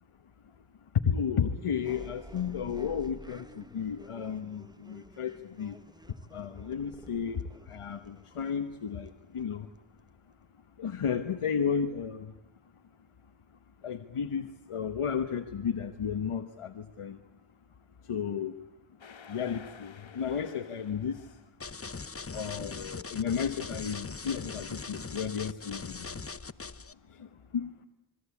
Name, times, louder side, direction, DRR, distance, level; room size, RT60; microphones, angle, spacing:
voice 1, 1.0-5.7 6.3-7.4 7.7-9.7 10.8-12.3 13.8-17.2 18.1-18.5 19.3-21.2 22.3-26.1 27.5-27.7, left 7 dB, 90° left, 8 dB, 1.3 m, -33 dB
sound 1, 1.8-10.4, right 1 dB, 10° right, 1.3 m, -51 dB
sound 2, 19.0-21.6, left 7 dB, 65° left, 1.4 m, -52 dB
sound 3, 21.6-26.9, left 4 dB, 25° left, 1.0 m, -40 dB
27.5 x 23.5 x 8.4 m, 0.83 s
cardioid pair, 50°, 50 cm